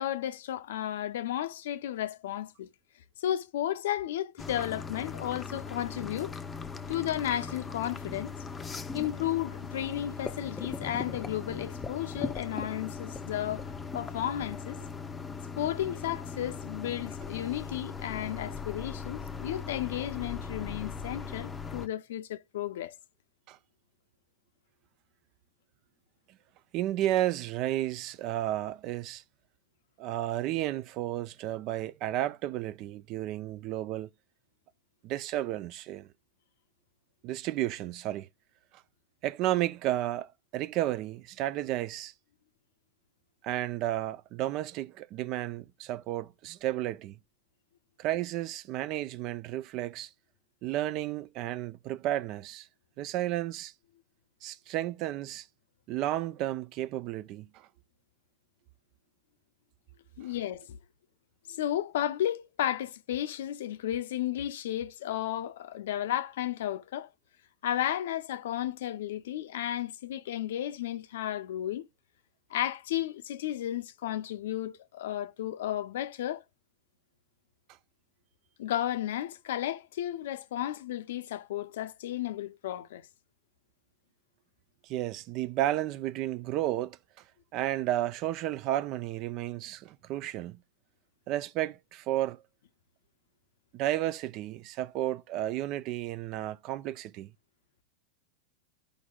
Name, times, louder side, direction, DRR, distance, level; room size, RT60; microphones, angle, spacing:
voice 1, 0.0-2.7 3.2-6.3 6.9-8.3 8.9-13.6 13.9-14.8 15.6-22.9 60.2-60.8 61.5-67.1 67.6-71.9 72.5-76.4 78.6-83.1, left 12 dB, 75° left, 0.5 m, -33 dB
sound 1, 4.4-21.9, left 5 dB, 15° left, 0.6 m, -39 dB
voice 2, 26.7-29.2 30.0-34.1 35.0-36.1 37.2-38.3 39.2-42.1 43.4-47.2 48.0-50.1 50.6-52.7 53.0-53.7 54.4-55.5 55.9-57.7 84.8-87.0 87.5-90.6 91.3-92.4 93.7-97.3, right 14 dB, 45° right, 0.4 m, -32 dB
12.5 x 5.1 x 2.3 m
hypercardioid pair, 115°, 0 cm